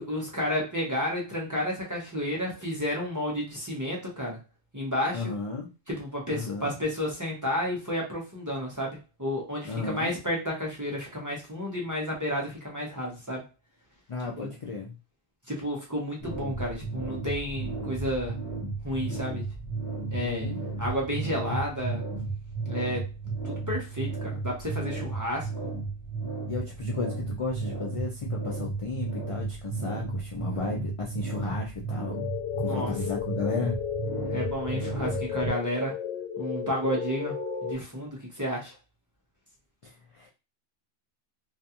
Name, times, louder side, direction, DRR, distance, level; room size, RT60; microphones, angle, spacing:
voice 1, 0.0-4.4 4.7-5.2 5.9-13.4 14.4-14.5 15.5-18.4 18.8-19.4 20.1-20.5 20.8-22.0 22.7-23.1 23.4-25.7 32.6-32.9 34.3-35.9 36.4-37.3 37.6-38.7, equal, 20° right, -3 dB, 0.6 m, -31 dB
voice 2, 5.1-5.7 6.3-6.7 9.7-10.1 14.1-14.9 20.2-20.6 26.5-32.2 32.6-33.8 39.8-40.3, left 4 dB, 60° left, -1 dB, 0.3 m, -34 dB
sound 1, 16.2-35.5, right 3 dB, 20° left, 1.0 m, -34 dB
sound 2, 32.1-37.7, left 8 dB, 90° left, 0.9 m, -34 dB
2.4 x 2.3 x 2.7 m, 0.28 s
omnidirectional pair, 1.1 m